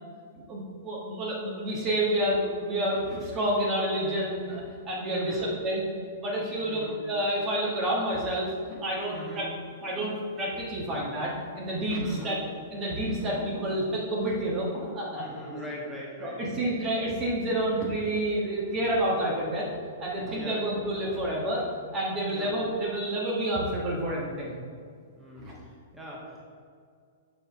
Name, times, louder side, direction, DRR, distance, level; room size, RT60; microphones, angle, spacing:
voice 1, 0.5-5.9 6.2-8.5 8.8-9.5 9.8-12.4 12.7-14.7 14.9-15.2 15.5-15.6 16.2-19.7 20.0-21.6 21.9-24.6 25.4-25.5, right 1 dB, 25° right, -4 dB, 1.5 m, -29 dB
voice 2, 5.1-5.5 6.6-7.0 9.1-9.5 12.0-12.4 15.1-16.6 20.3-20.7 22.3-22.5 25.2-26.4, equal, 5° right, -5 dB, 1.7 m, -41 dB
sound 1, 8.7-9.0 9.8-10.4 10.9-11.2 12.1-12.5 13.4-13.8 14.6-14.9, left 2 dB, 25° left, 1.6 m, -43 dB
6.9 x 6.7 x 3.5 m, 2.1 s
figure-of-eight pair, 105°, 0 cm